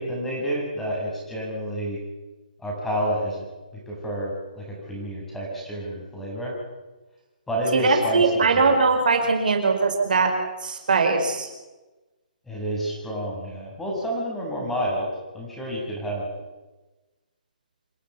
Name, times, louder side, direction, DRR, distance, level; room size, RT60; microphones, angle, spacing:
voice 1, 0.0-2.0 2.6-3.4 3.7-6.5 7.5-8.7 12.5-15.1 15.3-16.3, equal, 5° left, -3 dB, 7.3 m, -29 dB
voice 2, 7.7-10.3 10.6-11.5, right 4 dB, 75° right, 4 dB, 5.2 m, -21 dB
28.0 x 11.5 x 9.9 m, 1.1 s
hypercardioid pair, 155°, 5 cm